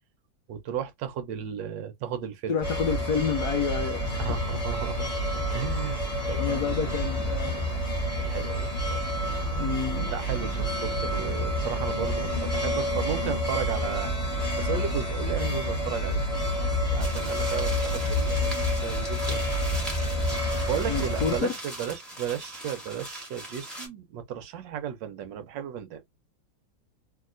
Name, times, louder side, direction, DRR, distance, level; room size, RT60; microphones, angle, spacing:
voice 1, 0.5-2.6 4.2-5.1 5.5-7.0 8.2-9.1 10.1-16.2 16.9-18.5 18.8-19.4 20.7-26.0, right 9 dB, 75° right, 1.3 m, -34 dB
voice 2, 2.5-4.3 5.3-5.6 6.1-7.7 9.6-10.1 20.9-21.5, left 7 dB, 70° left, 1.0 m, -30 dB
sound 1, 2.6-21.4, equal, 20° left, 1.3 m, -28 dB
sound 2, 17.0-23.9, right 1 dB, ahead, 1.2 m, -40 dB
3.1 x 2.8 x 2.5 m
omnidirectional pair, 2.1 m